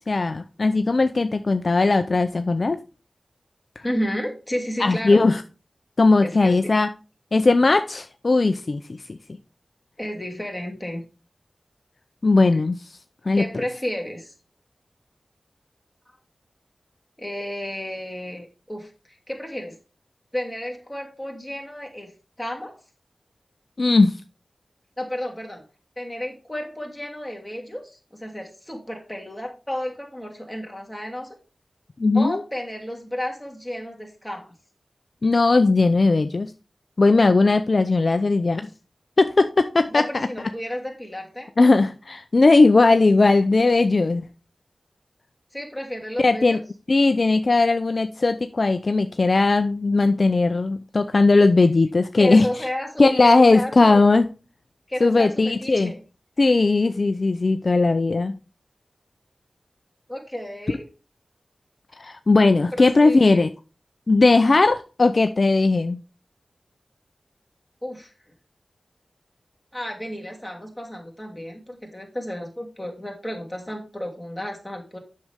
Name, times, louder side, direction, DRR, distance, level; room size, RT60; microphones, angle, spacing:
voice 1, 0.1-2.8 4.8-5.4 6.0-6.9 7.3-8.8 9.1-9.2 12.2-12.8 13.3-13.4 23.8-24.2 32.0-32.4 35.2-36.5 37.0-38.7 39.2-40.3 41.6-44.2 46.2-46.6 46.9-52.5 53.0-54.3 55.0-55.9 56.4-58.3 62.0-63.5 64.1-66.0, left 3 dB, 60° left, 9 dB, 0.5 m, -18 dB
voice 2, 3.8-5.3 6.2-6.7 10.0-11.0 12.5-12.6 13.3-14.3 17.2-19.7 20.3-22.7 25.0-25.6 26.0-31.4 32.1-34.5 39.9-41.5 45.5-46.6 52.2-54.1 54.9-56.0 60.1-60.9 62.7-63.4 67.8-68.1 69.7-75.0, equal, 10° left, 0 dB, 2.7 m, -32 dB
7.8 x 6.6 x 3.5 m, 0.33 s
cardioid pair, 50°, 0 cm